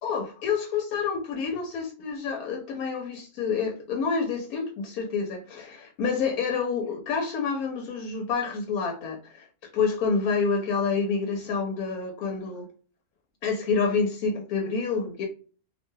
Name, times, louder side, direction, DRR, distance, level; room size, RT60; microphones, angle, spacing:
voice 1, 0.0-9.5 9.7-12.7 13.4-15.3, left 5 dB, 85° left, 1.1 m, -28 dB
2.6 x 2.2 x 3.0 m
omnidirectional pair, 1.5 m